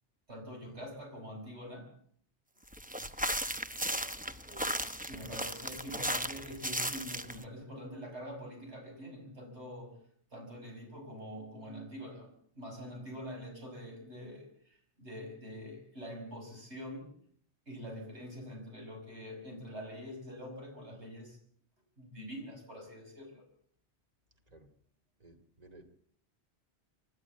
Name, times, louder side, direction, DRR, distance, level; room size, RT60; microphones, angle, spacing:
voice 1, 0.3-1.9 5.1-10.0 10.3-17.1 17.7-21.4 22.0-23.4, equal, 85° right, 2 dB, 6.1 m, -45 dB
sound 1, 2.7-7.4, right 1 dB, 10° right, 0.8 m, -36 dB
voice 2, 25.2-26.0, right 2 dB, 35° right, 5 dB, 2.6 m, -56 dB
26.0 x 12.5 x 8.4 m, 0.63 s
omnidirectional pair, 1.1 m